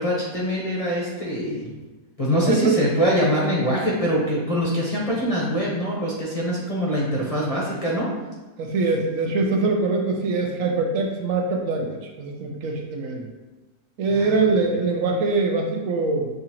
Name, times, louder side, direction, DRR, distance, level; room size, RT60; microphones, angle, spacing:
voice 1, 0.0-1.7 2.2-8.1 14.1-14.4, equal, 30° left, -6 dB, 0.7 m, -23 dB
voice 2, 2.5-2.8 8.6-13.3 14.0-16.3, right 3 dB, 70° right, 1 dB, 1.0 m, -23 dB
6.6 x 2.5 x 2.9 m, 1.1 s
omnidirectional pair, 1.5 m